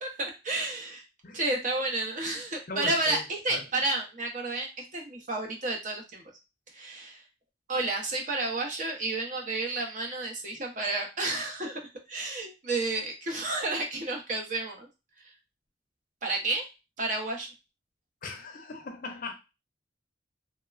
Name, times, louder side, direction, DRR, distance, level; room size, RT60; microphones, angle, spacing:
voice 1, 0.0-1.0 1.3-6.2 6.7-7.2 7.7-11.8 12.1-14.9 16.2-16.6 17.0-17.5, right 2 dB, 45° right, 0.6 m, -31 dB
voice 2, 2.7-3.2 3.5-3.6 18.2-19.3, left 3 dB, 50° left, 0.5 m, -39 dB
3.1 x 2.1 x 2.3 m
head